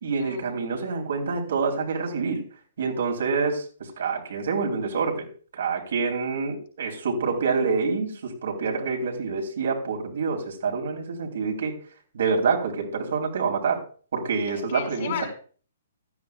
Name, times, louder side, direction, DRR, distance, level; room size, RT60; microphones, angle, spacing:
voice 1, 0.0-2.4 2.8-5.3 5.5-11.7 12.1-13.8 14.1-15.2, right 5 dB, 55° right, 1 dB, 3.3 m, -27 dB
voice 2, 14.5-15.3, left 8 dB, 45° left, 2 dB, 5.6 m, -34 dB
16.0 x 13.5 x 2.3 m, 0.42 s
figure-of-eight pair, 120°, 0 cm